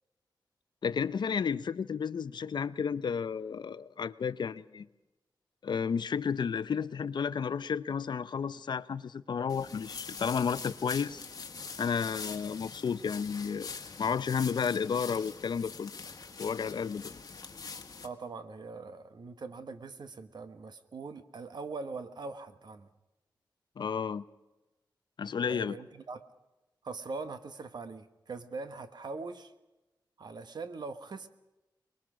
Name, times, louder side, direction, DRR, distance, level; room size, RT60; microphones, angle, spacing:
voice 1, 0.8-4.9 5.6-11.2 11.8-13.7 14.0-15.9 16.4-17.1 23.8-24.2 25.2-25.8, left 6 dB, 70° left, 0.6 m, -32 dB
sound 1, 9.5-18.1, left 5 dB, 50° left, 1.6 m, -44 dB
voice 2, 18.0-22.9 25.5-26.2 26.8-29.5 30.2-31.3, right 4 dB, 65° right, 1.2 m, -42 dB
23.5 x 21.5 x 6.3 m
wide cardioid pair, 140°, 8 cm